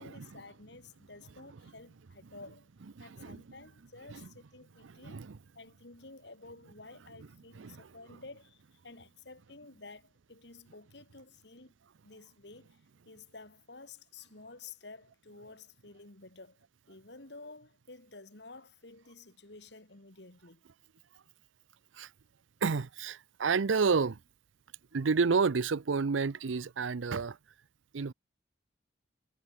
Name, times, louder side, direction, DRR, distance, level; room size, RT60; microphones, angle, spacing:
voice 1, 0.0-2.7 3.0-5.3 5.5-11.7 12.0-12.8 13.1-20.6, left 3 dB, 65° left, 2.4 m, -52 dB
voice 2, 3.0-3.4 4.1-4.3 4.8-5.4 7.5-7.9 21.9-22.1 22.6-24.2 24.9-27.4 27.9-28.1, right 5 dB, 90° right, 0.6 m, -30 dB
head